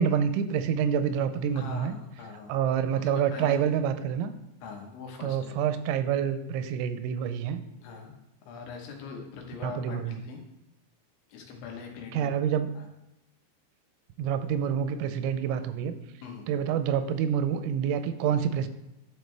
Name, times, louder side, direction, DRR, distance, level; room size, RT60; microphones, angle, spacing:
voice 1, 0.0-2.0 2.5-4.3 5.2-7.6 9.6-10.2 12.1-12.7 14.2-15.9 16.5-18.7, right 8 dB, 90° right, 10 dB, 3.0 m, -27 dB
voice 2, 1.6-2.5 3.0-3.6 4.6-5.6 7.8-8.1 8.4-10.4 11.3-12.3 12.8-12.9 16.2-16.5, left 5 dB, 85° left, 2 dB, 3.5 m, -42 dB
11.5 x 4.4 x 3.3 m, 0.94 s
omnidirectional pair, 5.2 m